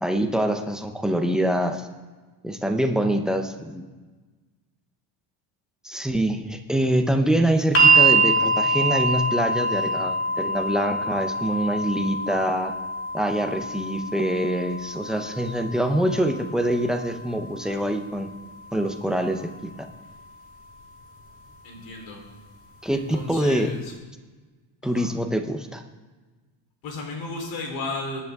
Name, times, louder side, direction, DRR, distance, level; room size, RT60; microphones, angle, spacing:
voice 1, 0.0-1.9 2.4-3.8 5.8-12.8 13.1-18.3 18.7-19.9 22.8-23.7 24.8-25.8, right 1 dB, ahead, 4 dB, 0.5 m, -25 dB
sound 1, 7.7-19.8 20.9-21.0, right 2 dB, 30° left, 1.7 m, -25 dB
voice 2, 9.6-10.1 21.6-22.2 22.9-23.9 24.8-25.1 26.8-28.2, left 2 dB, 65° left, 2 dB, 3.7 m, -34 dB
18.5 x 11.0 x 3.5 m, 1.3 s
cardioid pair, 180°, 47 cm